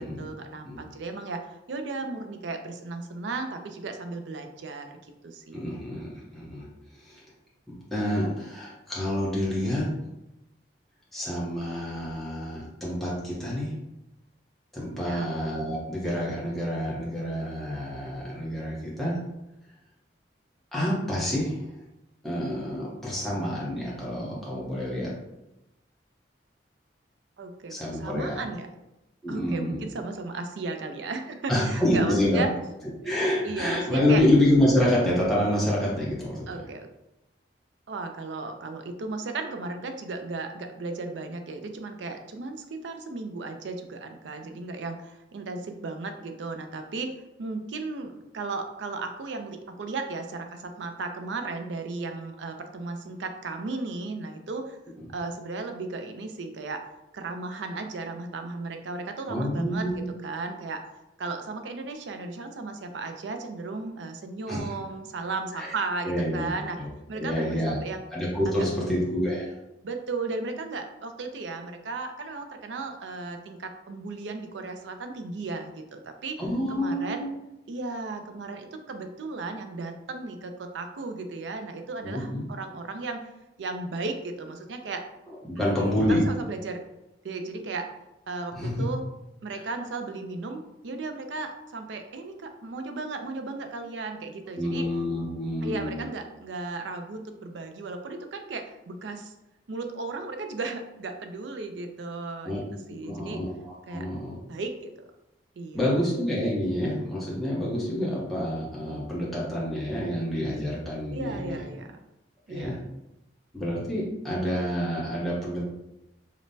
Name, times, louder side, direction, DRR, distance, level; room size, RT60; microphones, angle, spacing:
voice 1, 0.0-5.0 5.2-5.8 15.0-15.3 27.4-28.7 29.3-32.5 33.0-33.1 33.4-34.2 36.5-36.9 37.9-47.1 47.4-54.8 55.1-56.8 57.1-60.8 61.2-66.8 67.1-68.0 68.5-69.2 69.8-76.4 76.7-77.2 77.7-83.2 83.6-85.0 85.5-86.8 87.2-87.9 88.3-89.0 89.4-94.9 95.6-99.3 99.7-103.4 103.9-104.1 104.5-104.9 105.6-105.8 111.1-112.0 112.5-112.8, right 3 dB, 80° right, 6 dB, 0.4 m, -35 dB
voice 2, 5.5-6.7 7.0-7.2 7.7-9.9 11.1-13.7 14.7-19.2 20.7-21.7 22.2-25.1 27.7-28.4 29.2-29.9 31.5-32.4 33.0-36.6 59.3-60.0 64.5-64.7 65.5-65.7 66.0-67.8 68.1-69.5 76.4-77.3 82.0-82.4 85.3-86.2 88.5-88.9 94.5-96.0 102.4-102.6 103.0-103.5 103.9-104.3 105.7-111.6 112.5-112.8 113.5-115.6, left 1 dB, ahead, -7 dB, 0.8 m, -27 dB
5.1 x 2.1 x 2.6 m, 0.90 s
head